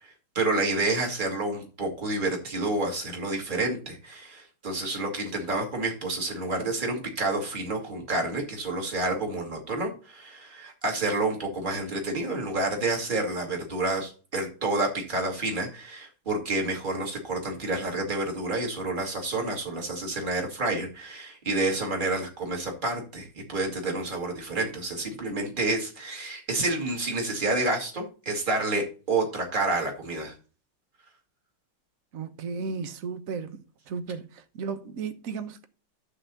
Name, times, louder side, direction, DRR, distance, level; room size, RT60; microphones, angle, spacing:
voice 1, 0.0-30.3, right 2 dB, 20° right, 2.5 m, -29 dB
voice 2, 32.1-33.6 33.9-35.7, right 5 dB, 50° right, 1.1 m, -34 dB
11.5 x 4.0 x 7.0 m
omnidirectional pair, 2.4 m